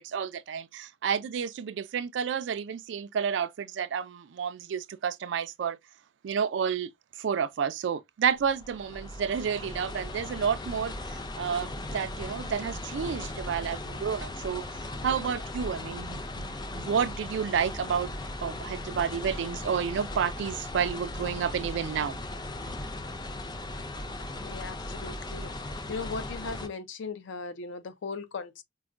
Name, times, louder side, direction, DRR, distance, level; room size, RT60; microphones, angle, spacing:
voice 1, 0.0-5.8 6.2-6.9 7.2-14.7 15.0-18.1 18.4-22.2, right 7 dB, 75° right, 0.3 m, -30 dB
sound 1, 8.3-26.7, left 1 dB, 25° left, 0.5 m, -38 dB
voice 2, 24.4-25.5 25.9-28.6, left 4 dB, 85° left, 0.5 m, -38 dB
4.7 x 2.1 x 2.4 m
head